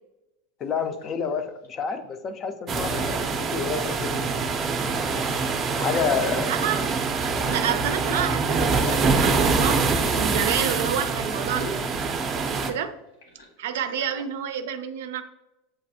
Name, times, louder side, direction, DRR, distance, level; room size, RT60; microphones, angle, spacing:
sound 1, 0.6-2.0 2.9-3.8 4.4-4.9 5.4-5.5 6.2-7.3 7.9-11.1 11.5-12.8 13.1-14.3, left 1 dB, 80° left, 1.4 m, -42 dB
voice 1, 0.6-4.4 5.8-6.5, left 6 dB, 30° left, 9 dB, 0.5 m, -29 dB
sound 2, 2.7-12.7, right 4 dB, 25° right, 0.5 m, -25 dB
voice 2, 6.4-6.8 7.5-11.7 12.5-12.9 13.6-15.2, right 8 dB, 80° right, 9 dB, 0.5 m, -29 dB
7.5 x 2.5 x 2.7 m, 0.95 s
supercardioid pair, 145°, 0 cm